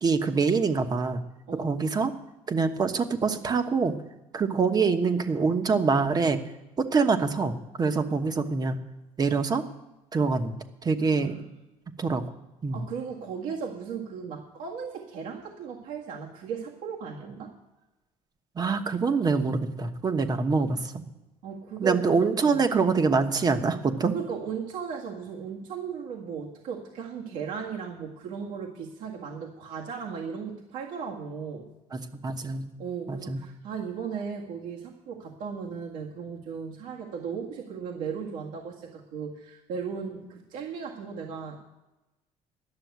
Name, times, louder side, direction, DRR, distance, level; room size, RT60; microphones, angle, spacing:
voice 1, 0.0-1.2 1.6-2.1 2.5-3.9 4.3-6.4 6.8-8.8 9.2-9.6 10.1-10.5 10.8-11.4 12.0-12.2 12.6-12.8 18.6-21.0 21.8-24.1 31.9-32.7 33.1-33.4, right 4 dB, 30° right, 7 dB, 1.1 m, -25 dB
voice 2, 11.0-11.5 12.7-17.5 21.4-22.6 24.1-31.7 32.8-41.6, right 6 dB, 85° right, -2 dB, 1.8 m, -36 dB
12.0 x 6.9 x 9.3 m, 1.0 s
cardioid pair, 120°, 13 cm